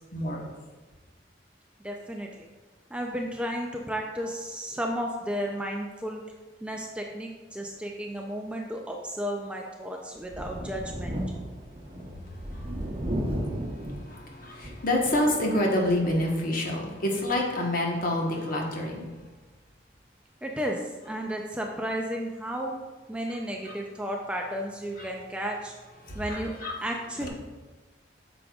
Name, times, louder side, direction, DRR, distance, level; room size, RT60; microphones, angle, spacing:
voice 1, 0.1-0.5 14.1-19.1 23.6-23.7 25.0-25.1 26.1-26.8 27.2-27.3, left 1 dB, 50° left, 0 dB, 1.2 m, -27 dB
voice 2, 1.8-2.5 2.9-6.2 6.6-11.1 20.4-20.8 21.0-22.7 23.1-25.7 26.1-26.5 26.8-27.3, equal, 5° right, 1 dB, 0.4 m, -33 dB
Thunder, 10.2-15.3 15.8-15.9 17.2-17.3, equal, 30° right, 0.8 m, -34 dB
8.6 x 6.0 x 2.4 m, 1.2 s
head